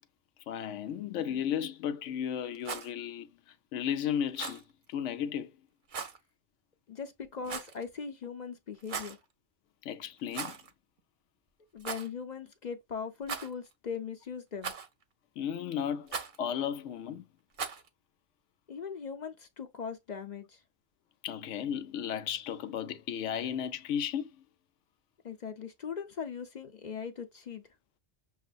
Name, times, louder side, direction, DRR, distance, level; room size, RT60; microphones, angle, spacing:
voice 1, 0.5-3.3 3.7-4.6 4.9-5.5 9.8-10.6 15.4-17.3 21.2-24.4, left 9 dB, 85° left, 0.9 m, -34 dB
Rattle, 2.5-2.9 4.3-4.6 5.9-6.2 7.4-7.8 8.8-9.2 10.3-10.7 11.0-11.1 11.8-12.1 13.2-13.7 14.6-15.0 16.1-16.4 17.5-17.9, right 5 dB, 50° right, 0.8 m, -38 dB
voice 2, 6.9-9.2 11.7-14.7 18.7-20.6 25.2-27.6, left 6 dB, 50° left, 0.6 m, -40 dB
6.3 x 2.5 x 2.4 m
omnidirectional pair, 1.2 m